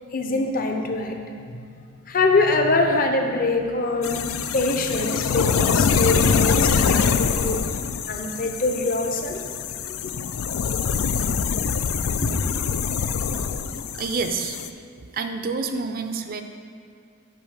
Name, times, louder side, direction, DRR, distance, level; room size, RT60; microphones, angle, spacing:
voice 1, 0.1-1.2 1.5-1.6 2.1-7.6 8.1-9.4 9.9-10.1 12.2-12.3, left 2 dB, 45° left, 3 dB, 0.7 m, -24 dB
sound 1, 4.0-14.7, left 6 dB, 85° left, 0.4 m, -24 dB
voice 2, 13.9-14.6 15.1-16.4, right 4 dB, 45° right, 7 dB, 0.5 m, -28 dB
6.9 x 5.1 x 6.4 m, 2.2 s
head